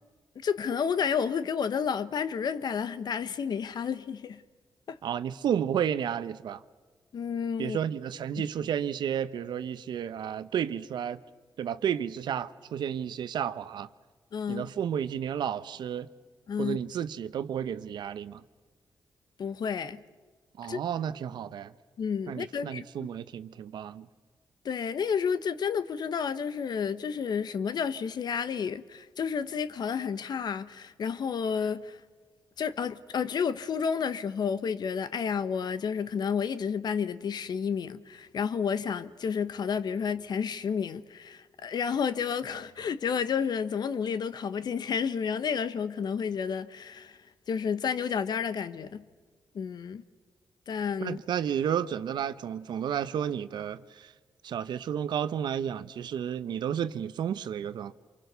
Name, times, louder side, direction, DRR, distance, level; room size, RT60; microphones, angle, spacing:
voice 1, 0.3-4.4 4.9-5.0 7.1-7.8 14.3-14.7 16.5-16.8 19.4-20.0 20.7-20.8 22.0-22.8 24.6-32.0 32.6-47.2 47.5-49.0 49.5-50.0 50.7-51.2, left 6 dB, 70° left, 1.0 m, -31 dB
voice 2, 5.0-6.6 7.6-11.2 11.6-13.9 14.5-16.1 16.6-18.4 20.6-21.7 22.3-24.1 51.0-54.1 54.4-57.9, right 9 dB, 80° right, 0.9 m, -32 dB
27.5 x 24.0 x 6.8 m
cardioid pair, 55°, 7 cm